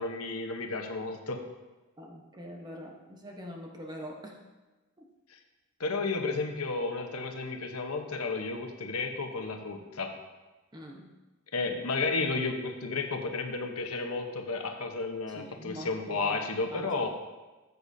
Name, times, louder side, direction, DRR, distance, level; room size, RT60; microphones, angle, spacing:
voice 1, 0.0-1.4 5.3-5.4 5.8-10.1 11.5-17.1, left 3 dB, 80° left, 4 dB, 1.0 m, -32 dB
voice 2, 2.0-4.4 5.0-5.1 10.7-11.1 15.3-16.4 16.7-16.9, equal, 20° right, 1 dB, 1.0 m, -43 dB
13.5 x 8.0 x 2.7 m, 1.2 s
head